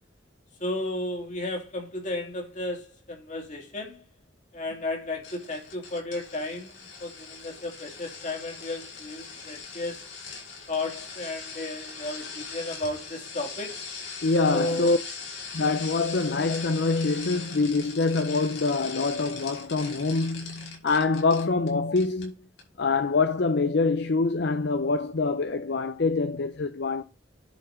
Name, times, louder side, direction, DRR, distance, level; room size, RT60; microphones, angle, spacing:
voice 1, 0.6-4.1 4.5-10.1 10.7-13.8 14.5-14.9, left 2 dB, 40° left, 3.0 m, -33 dB
sound 1, 5.2-21.7 22.0-22.3 22.6-22.7, left 5 dB, 90° left, 5.7 m, -41 dB
voice 2, 14.2-15.0 15.5-22.4 22.8-27.0, left 3 dB, 65° left, 0.7 m, -25 dB
10.5 x 4.8 x 5.0 m
head